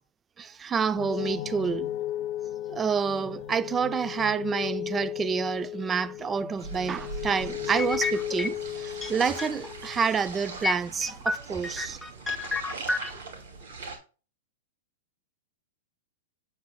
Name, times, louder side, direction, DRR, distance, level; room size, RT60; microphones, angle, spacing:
voice 1, 0.4-1.9 2.7-12.0, right 6 dB, 20° right, 0.5 m, -28 dB
sound 1, 0.9-10.6, left 12 dB, 50° left, 0.6 m, -35 dB
sound 2, 6.6-14.0, right 3 dB, 75° right, 2.5 m, -41 dB
sound 3, 7.8-8.7 9.0-9.7 10.0-10.1 10.6-13.1, left 3 dB, 10° left, 0.8 m, -30 dB
7.6 x 7.5 x 2.2 m
hypercardioid pair, 115°, 0 cm